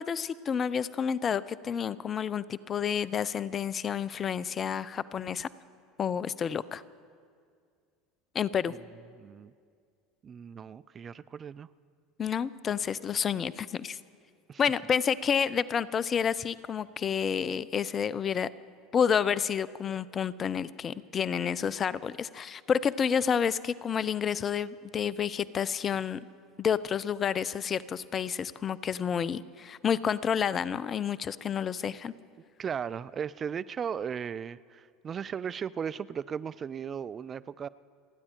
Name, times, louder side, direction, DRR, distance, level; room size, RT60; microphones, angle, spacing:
voice 1, 0.0-5.5 6.0-6.8 8.3-8.7 12.2-14.0 14.6-18.5 18.9-26.2 26.6-32.1, left 7 dB, 35° left, 18 dB, 0.5 m, -29 dB
voice 2, 9.2-9.5 10.2-11.7 14.5-14.6 32.6-37.7, right 7 dB, 35° right, 18 dB, 0.4 m, -36 dB
29.5 x 9.9 x 4.5 m, 2.2 s
hypercardioid pair, 75°, 0 cm